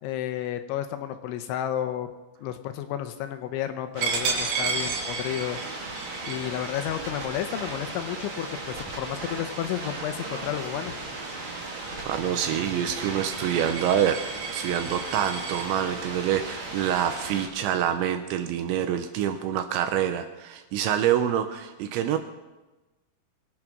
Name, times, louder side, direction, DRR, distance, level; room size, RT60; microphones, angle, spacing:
voice 1, 0.0-2.1 2.4-5.8 6.2-10.9, left 11 dB, 80° left, 8 dB, 3.0 m, -32 dB
sound 1, 3.9-17.5, right 2 dB, 40° right, 1.9 m, -36 dB
Coin (dropping), 4.0-9.4 9.9-10.1 10.5-15.6, right 5 dB, 60° right, 3.3 m, -34 dB
sound 2, 4.9-5.0 5.4-5.5 5.9-6.0 6.4-6.5 6.9-7.0 7.4-7.5 7.9-8.0 8.4-8.5 8.9-16.7, left 3 dB, 45° left, 4.8 m, -50 dB
voice 2, 12.1-22.2, right 10 dB, 80° right, 8 dB, 2.8 m, -26 dB
23.0 x 8.8 x 6.0 m, 1.1 s
omnidirectional pair, 5.8 m